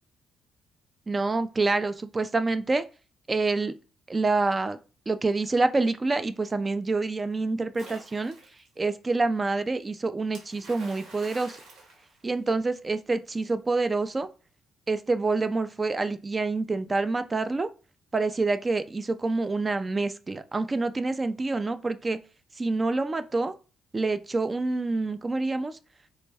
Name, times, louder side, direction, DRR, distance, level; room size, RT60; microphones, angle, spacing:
voice 1, 1.1-2.8 3.3-3.7 4.1-4.8 5.1-8.4 8.8-11.6 12.2-14.3 14.9-17.7 18.1-22.2 22.6-23.5 23.9-25.8, right 3 dB, 25° right, 11 dB, 0.3 m, -27 dB
Splash splatter, 7.7-8.7 10.3-12.8, right 2 dB, 80° right, 1.2 m, -48 dB
3.4 x 2.1 x 3.3 m, 0.34 s
cardioid pair, 90°, 0 cm